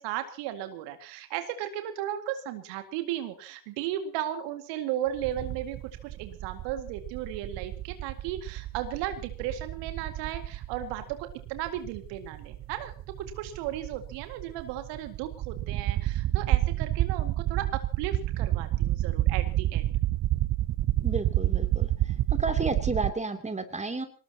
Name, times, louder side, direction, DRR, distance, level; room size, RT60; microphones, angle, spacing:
voice 1, 0.0-5.8 6.0-12.9 13.2-19.9, right 11 dB, 60° right, 8 dB, 2.2 m, -35 dB
sound 1, 5.2-23.1, right 14 dB, 35° right, 0.8 m, -29 dB
voice 2, 21.0-21.9 22.4-24.1, right 3 dB, 15° right, 7 dB, 3.0 m, -31 dB
25.0 x 19.5 x 2.9 m, 0.36 s
figure-of-eight pair, 65°, 49 cm